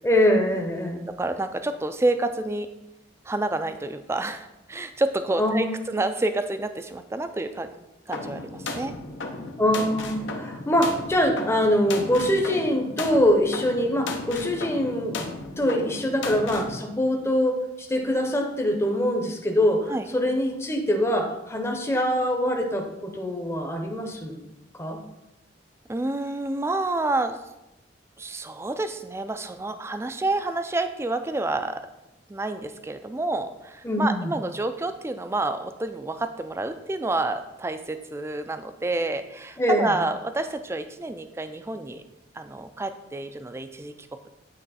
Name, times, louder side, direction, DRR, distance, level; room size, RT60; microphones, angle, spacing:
voice 1, 0.0-1.0 5.4-5.9 9.6-15.3 15.6-24.4 24.8-25.0 33.8-34.3 39.6-40.0, left 1 dB, 15° left, 2 dB, 0.7 m, -24 dB
voice 2, 1.1-2.7 3.3-7.7 8.1-8.9 19.9-20.1 25.9-27.4 28.2-31.8 32.3-42.0 42.3-43.9, right 2 dB, 15° right, 9 dB, 0.3 m, -29 dB
sound 1, 8.1-16.8, left 3 dB, 80° left, 0.7 m, -35 dB
9.1 x 3.1 x 4.1 m, 0.92 s
head